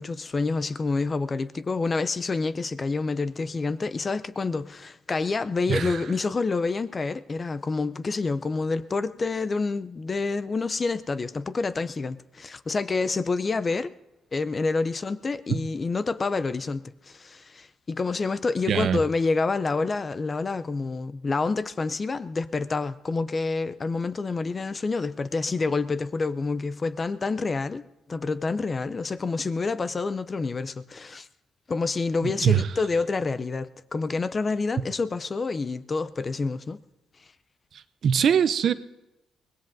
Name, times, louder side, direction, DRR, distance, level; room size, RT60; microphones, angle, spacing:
voice 1, 0.0-13.9 14.3-31.3 31.7-36.8, left 4 dB, 35° left, 0.5 m, -28 dB
voice 2, 18.7-19.0 32.2-32.6 38.0-38.7, right 8 dB, 60° right, 0.5 m, -22 dB
24.5 x 19.0 x 2.6 m
cardioid pair, 90°, 0 cm